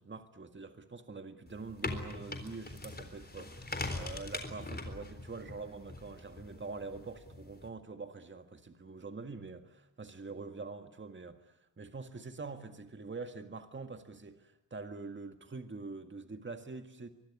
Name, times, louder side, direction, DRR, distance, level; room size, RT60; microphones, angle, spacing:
voice 1, 0.0-17.1, right 4 dB, 35° right, 7 dB, 1.9 m, -45 dB
sound 1, 1.5-7.7, left 2 dB, 30° left, 3.8 m, -42 dB
24.0 x 23.0 x 9.8 m, 0.85 s
wide cardioid pair, 110°, 34 cm